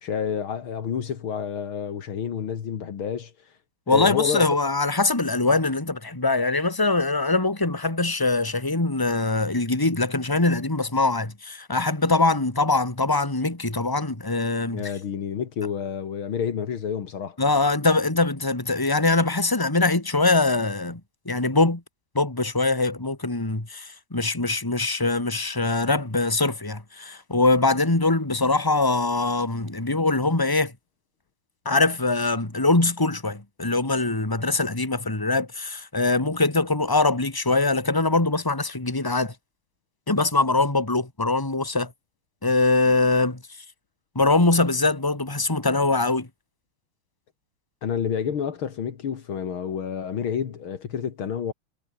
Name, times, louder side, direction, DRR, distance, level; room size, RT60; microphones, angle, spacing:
voice 1, 0.0-3.3 3.9-4.5 14.7-17.4 47.8-51.5, left 7 dB, 70° left, 2.5 m, -29 dB
voice 2, 3.9-14.9 17.4-21.0 21.3-21.8 22.1-30.7 31.6-39.3 40.1-41.9 42.4-43.4 44.1-46.3, left 3 dB, 10° left, 2.7 m, -23 dB
omnidirectional pair, 2.4 m